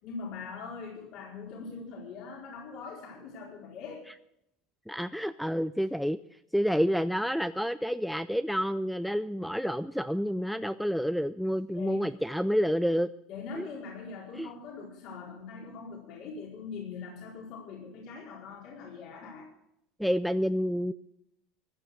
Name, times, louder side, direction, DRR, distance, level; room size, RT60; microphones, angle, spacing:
voice 1, 0.0-4.1 11.7-12.1 13.3-19.5, left 5 dB, 60° left, -2 dB, 4.4 m, -42 dB
voice 2, 4.9-6.2 6.5-13.1 13.6-13.7 14.4-14.5 20.0-20.9, equal, ahead, 12 dB, 0.4 m, -29 dB
15.5 x 10.5 x 6.6 m, 0.77 s
supercardioid pair, 130°, 0 cm